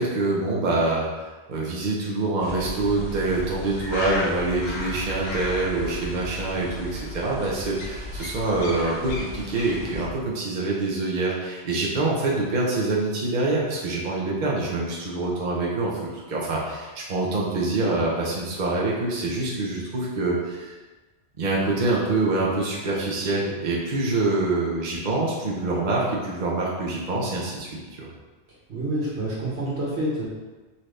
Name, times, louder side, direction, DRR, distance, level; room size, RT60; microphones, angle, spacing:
voice 1, 0.0-15.9 16.3-20.7 21.4-27.7 28.0-28.1, right 2 dB, 50° right, -4 dB, 0.9 m, -25 dB
sound 1, 2.4-10.1, left 1 dB, 65° left, 0.9 m, -34 dB
voice 2, 28.7-30.3, right 1 dB, 80° right, -6 dB, 1.6 m, -27 dB
4.2 x 3.8 x 3.2 m, 1.2 s
omnidirectional pair, 1.1 m